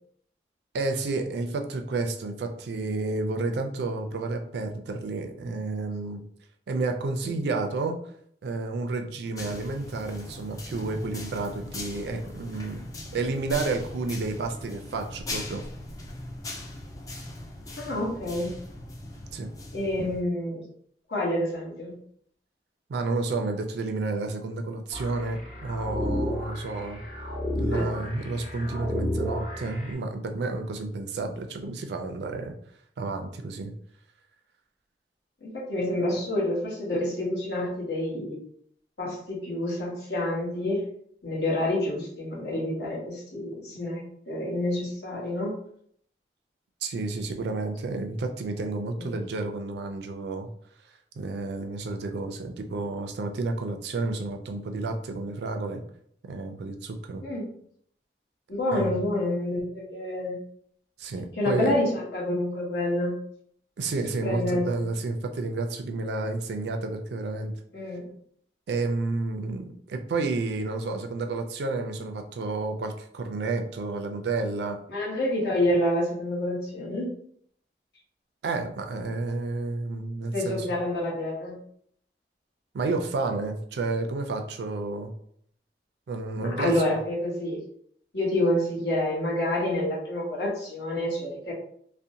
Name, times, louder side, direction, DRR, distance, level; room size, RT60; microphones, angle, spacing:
voice 1, 0.7-6.2 6.7-8.0 8.4-12.9 13.1-15.6 19.3-19.5 22.9-27.0 27.6-32.5 33.0-33.7 46.8-50.5 51.2-55.8 56.2-57.2 58.7-59.0 61.0-61.7 63.8-67.6 68.7-74.8 78.4-80.7 82.7-85.1 86.1-86.8, right 3 dB, 70° right, 5 dB, 0.3 m, -31 dB
sound 1, 9.4-20.2, left 1 dB, 20° left, 0.3 m, -39 dB
voice 2, 17.8-18.6 19.7-20.6 21.1-22.0 27.7-28.0 35.4-38.4 39.0-40.8 41.2-45.5 49.0-49.2 57.2-57.5 58.5-60.4 61.4-63.2 64.2-64.9 67.7-68.1 74.9-77.1 80.3-81.6 86.4-87.6 88.1-91.5, left 1 dB, 70° left, -4 dB, 1.0 m, -28 dB
sound 2, 24.9-29.9, left 1 dB, 50° left, 0.9 m, -32 dB
2.5 x 2.1 x 2.7 m, 0.66 s
head